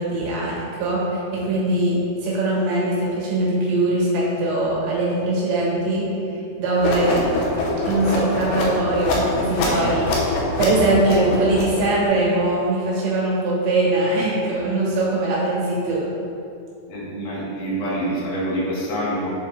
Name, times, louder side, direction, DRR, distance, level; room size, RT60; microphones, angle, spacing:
voice 1, 0.0-6.0 6.6-7.2 7.8-16.1, right 2 dB, 80° right, -6 dB, 3.8 m, -21 dB
sound 1, 6.8-12.1, left 2 dB, 80° left, 3.2 m, -24 dB
voice 2, 16.9-19.3, right 1 dB, 55° left, -8 dB, 1.9 m, -26 dB
8.7 x 4.0 x 3.8 m, 2.6 s
omnidirectional pair, 5.1 m